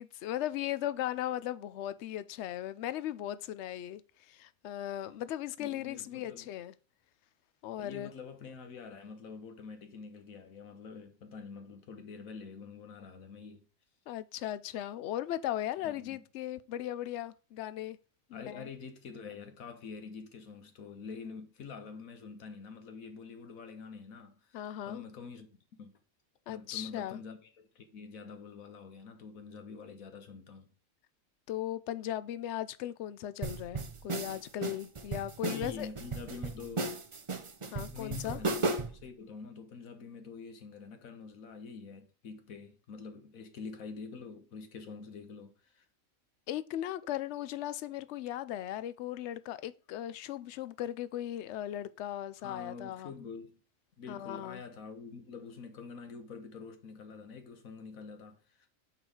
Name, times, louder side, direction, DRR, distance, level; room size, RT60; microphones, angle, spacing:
voice 1, 0.0-4.0 4.3-6.7 7.6-8.1 14.1-18.0 18.3-18.7 24.5-25.0 26.5-27.2 31.5-35.9 37.7-38.4 46.5-53.1 54.1-54.6, left 12 dB, 65° left, 0.8 m, -37 dB
voice 2, 5.6-6.5 7.8-13.6 15.8-16.2 18.3-25.5 25.8-25.9 26.5-30.7 35.5-37.0 37.6-45.8 52.4-53.6 54.0-58.7, left 5 dB, 90° left, 1.6 m, -46 dB
sound 1, 33.4-39.0, right 3 dB, 35° right, 0.5 m, -35 dB
6.2 x 4.6 x 4.8 m
omnidirectional pair, 1.4 m